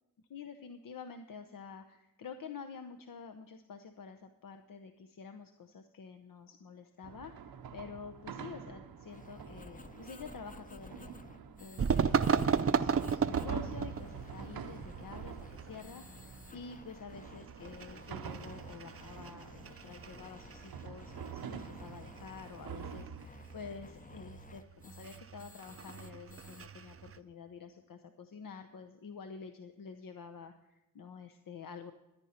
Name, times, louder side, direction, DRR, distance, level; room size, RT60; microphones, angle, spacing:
voice 1, 0.3-11.1 11.6-31.9, left 5 dB, 65° left, 7 dB, 0.8 m, -48 dB
sound 1, 7.0-23.3, right 7 dB, 85° right, 0.8 m, -47 dB
sound 2, 9.1-26.7, left 3 dB, 25° left, 0.7 m, -54 dB
sound 3, 11.8-27.2, right 6 dB, 40° right, 0.6 m, -36 dB
14.0 x 9.7 x 4.3 m, 1.0 s
cardioid pair, 55°, 36 cm